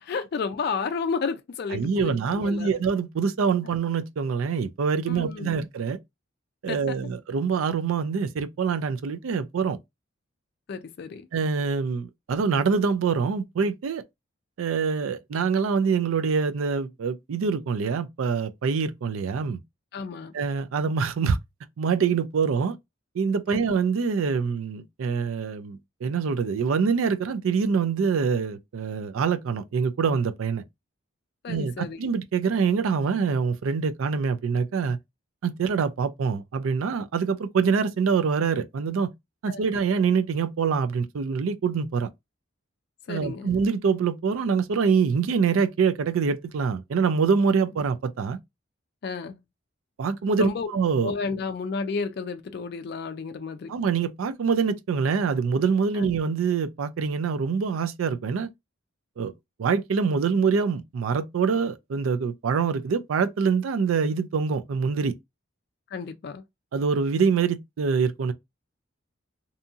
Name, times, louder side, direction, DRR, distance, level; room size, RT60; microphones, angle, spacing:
voice 1, 0.0-2.7 5.1-5.6 6.7-7.0 10.7-11.3 19.9-20.3 23.5-23.8 31.4-32.0 39.5-39.7 43.1-43.5 49.0-49.4 50.4-50.7 51.0-53.7 55.9-56.1 65.9-66.4, left 5 dB, 50° left, 0.3 m, -32 dB
voice 2, 1.7-6.0 6.6-9.8 11.3-14.0 14.6-19.6 20.3-21.4 21.8-22.8 23.1-30.6 31.5-35.0 35.4-39.1 39.4-42.1 43.1-48.4 50.0-51.1 53.7-58.5 59.2-59.3 59.6-65.1 66.7-68.3, right 5 dB, 80° right, 0.4 m, -25 dB
2.7 x 2.6 x 2.3 m
head